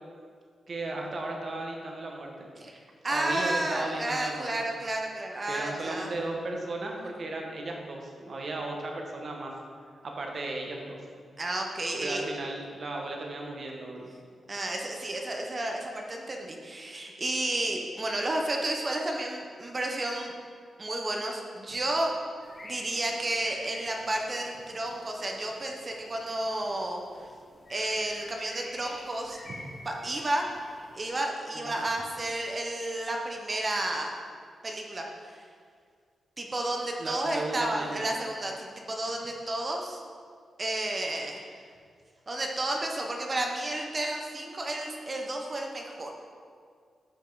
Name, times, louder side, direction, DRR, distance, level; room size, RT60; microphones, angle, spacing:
voice 1, 0.7-2.5 3.1-4.5 5.5-9.5 10.0-11.0 12.0-14.2 29.5-29.6 31.5-31.8 37.0-38.1, right 2 dB, 50° right, 1 dB, 1.2 m, -35 dB
voice 2, 3.0-6.1 11.4-12.3 14.5-20.3 20.8-22.1 22.6-27.3 27.7-29.4 29.8-30.5 30.9-34.2 34.6-35.4 36.4-40.0 40.6-41.5 42.3-46.1, right 1 dB, 30° right, 1 dB, 0.8 m, -32 dB
sound 1, 22.4-31.1, left 1 dB, 30° left, 1.1 m, -50 dB
10.0 x 5.4 x 3.9 m, 2.1 s
wide cardioid pair, 125°, 0 cm